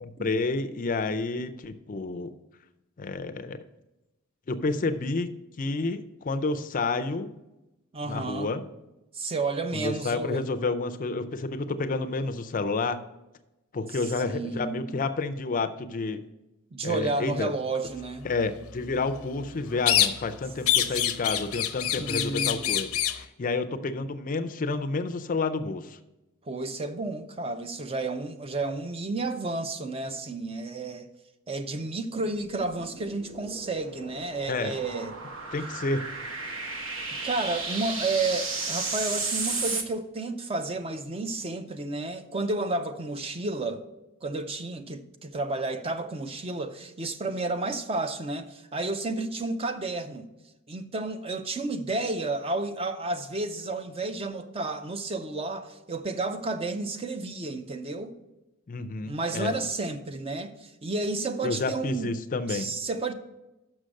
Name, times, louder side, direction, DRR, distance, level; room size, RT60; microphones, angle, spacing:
voice 1, 0.0-2.3 3.0-3.6 4.5-5.3 5.6-7.3 8.0-8.6 9.7-13.0 13.7-16.2 16.8-17.5 18.2-26.0 34.5-34.7 35.5-36.0 58.7-59.6 61.4-62.8, left 3 dB, 40° left, 0.4 m, -30 dB
voice 2, 7.9-8.5 9.1-10.5 14.2-15.0 16.7-18.3 22.0-22.8 26.5-31.1 31.5-35.2 37.2-43.8 44.2-50.3 50.7-58.1 59.0-62.1 62.5-63.1, right 3 dB, 25° right, 0.5 m, -31 dB
sound 1, 19.9-20.4 20.7-23.2, left 11 dB, 90° left, 0.6 m, -25 dB
sound 2, 32.3-39.8, right 3 dB, 65° right, 1.0 m, -34 dB
6.4 x 6.1 x 6.3 m
head